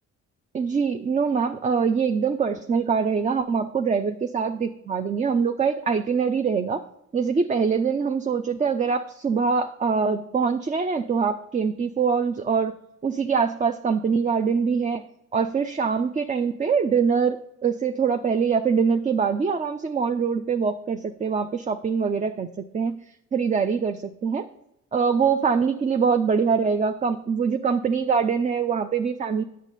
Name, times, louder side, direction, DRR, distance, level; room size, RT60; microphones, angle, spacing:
voice 1, 0.5-6.8 7.1-12.8 13.0-15.0 15.3-22.5 22.7-23.0 23.3-24.4 24.9-29.4, right 5 dB, 25° right, 9 dB, 0.4 m, -23 dB
8.9 x 7.4 x 4.0 m, 0.83 s
cardioid pair, 90°, 30 cm